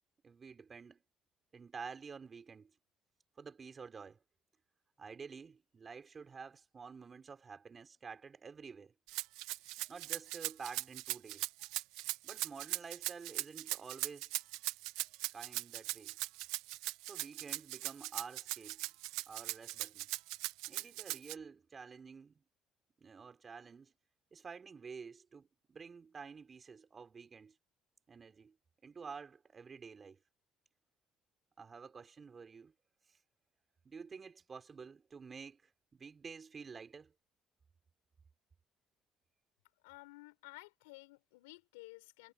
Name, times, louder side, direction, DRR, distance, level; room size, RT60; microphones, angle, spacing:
voice 1, 0.2-1.0 1.5-2.7 3.4-4.2 5.0-8.9 9.9-11.5 12.2-14.3 15.3-16.2 17.0-18.8 19.3-20.1 20.7-22.4 23.0-23.9 24.3-27.6 28.1-28.6 28.8-30.2 31.6-32.7 33.1-33.2 33.8-37.1, right 5 dB, 40° right, 6.1 m, -50 dB
Rattle (instrument), 9.1-21.3, right 19 dB, 80° right, 1.5 m, -39 dB
voice 2, 39.8-42.3, left 24 dB, 90° left, 7.4 m, -54 dB
hypercardioid pair, 65°, 0 cm